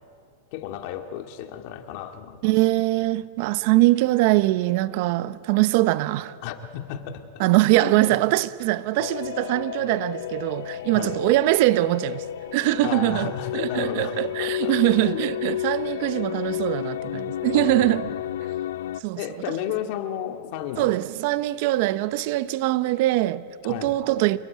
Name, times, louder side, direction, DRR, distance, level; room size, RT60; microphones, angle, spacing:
voice 1, 0.5-2.5 6.4-7.2 7.8-8.2 10.9-11.2 12.8-15.2 17.5-18.2 19.2-20.9 23.6-24.0, left 10 dB, 50° left, 2.1 m, -33 dB
voice 2, 2.4-6.4 7.4-12.2 12.5-18.1 19.0-19.2 20.8-24.4, right 17 dB, 50° right, 0.8 m, -22 dB
sound 1, 9.0-19.0, left 12 dB, 80° left, 0.6 m, -31 dB
27.0 x 20.5 x 9.5 m
supercardioid pair, 150°, 0 cm